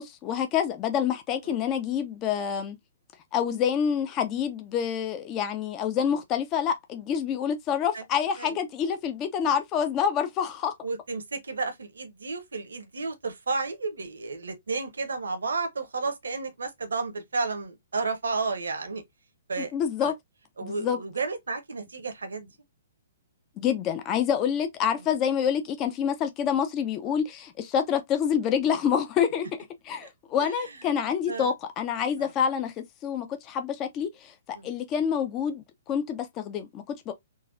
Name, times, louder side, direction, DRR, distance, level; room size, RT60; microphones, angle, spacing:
voice 1, 0.0-2.8 3.3-10.7 19.6-20.1 20.6-21.0 23.6-29.5 29.8-37.1, left 8 dB, 25° left, 0.5 m, -27 dB
voice 2, 10.8-19.0 19.5-19.7 20.0-20.1 20.6-22.5 30.4-30.5 31.3-31.5 32.2-32.3 34.5-34.7, right 4 dB, 70° right, 0.8 m, -32 dB
3.9 x 2.4 x 2.5 m
figure-of-eight pair, 120°, 0 cm